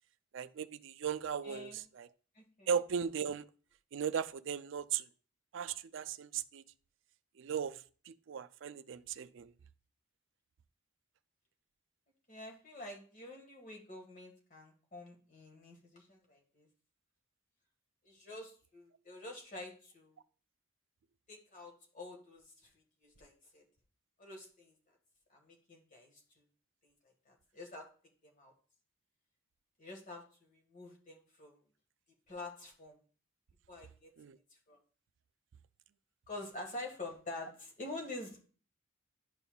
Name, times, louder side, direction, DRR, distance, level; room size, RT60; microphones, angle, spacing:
voice 1, 0.3-2.1 2.7-3.4 3.9-5.1 5.5-6.6 7.4-7.8 8.1-9.5 34.2-34.4, right 7 dB, 60° right, 0.4 m, -37 dB
voice 2, 1.4-1.8 2.3-2.7 12.3-16.7 18.0-20.2 21.3-23.6 24.2-25.0 25.3-26.4 26.8-27.9 28.2-28.5 29.8-31.6 32.3-33.0 33.7-34.1 34.7-34.8 36.3-38.5, left 2 dB, 40° left, 1.5 m, -48 dB
11.0 x 5.4 x 2.3 m
head